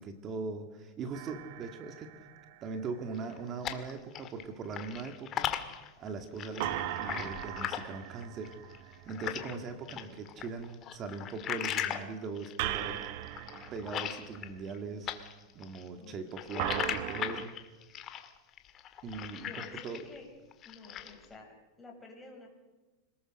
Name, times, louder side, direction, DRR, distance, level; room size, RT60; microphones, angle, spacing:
voice 1, 0.0-2.1 2.6-8.5 9.1-13.0 13.7-15.1 15.5-17.5 19.0-20.0, right 4 dB, 30° right, 7 dB, 2.1 m, -40 dB
sound 1, 1.1-2.9 6.6-9.8 12.6-14.8 16.6-17.4, right 13 dB, 60° right, 1.2 m, -39 dB
sound 2, 3.1-4.4 4.7-9.6 9.9-14.8 15.0-20.2 20.5-21.2, left 10 dB, 30° left, 1.8 m, -38 dB
voice 2, 9.9-10.2 16.0-16.2 19.4-20.3 20.6-22.5, left 3 dB, 10° left, 0 dB, 6.4 m, -51 dB
26.5 x 19.5 x 6.5 m, 1.2 s
supercardioid pair, 140°, 0 cm